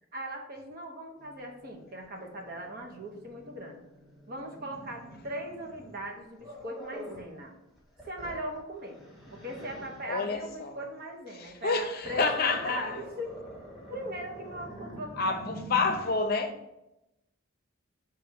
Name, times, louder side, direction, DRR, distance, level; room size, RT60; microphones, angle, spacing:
voice 1, 0.1-3.8 4.3-7.5 8.1-9.0 9.2-13.4 13.9-15.4, right 1 dB, 45° right, 1.0 m, -39 dB
Growling, 1.2-7.3 7.8-10.1 11.5-15.9, right 1 dB, ahead, 1.5 m, -46 dB
voice 2, 10.1-10.8 11.3-13.0 15.2-16.5, left 4 dB, 45° left, 0.6 m, -29 dB
5.8 x 3.4 x 5.1 m
head